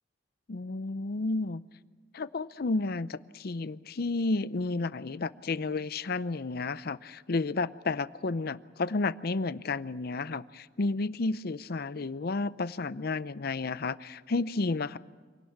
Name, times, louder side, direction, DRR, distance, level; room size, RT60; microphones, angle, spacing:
voice 1, 0.5-1.6 2.1-15.0, left 3 dB, 55° left, 16 dB, 0.6 m, -31 dB
26.0 x 18.0 x 7.2 m, 1.5 s
head